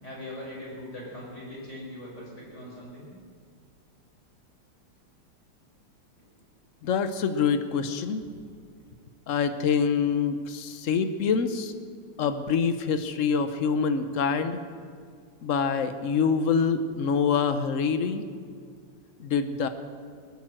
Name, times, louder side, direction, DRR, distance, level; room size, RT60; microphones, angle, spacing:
voice 1, 0.0-3.1, left 1 dB, 30° left, -4 dB, 5.1 m, -40 dB
voice 2, 6.8-8.3 9.3-11.7 12.2-14.6 15.4-18.2 19.2-19.7, left 6 dB, 70° left, 10 dB, 0.7 m, -25 dB
20.0 x 9.0 x 7.5 m, 2.1 s
omnidirectional pair, 2.3 m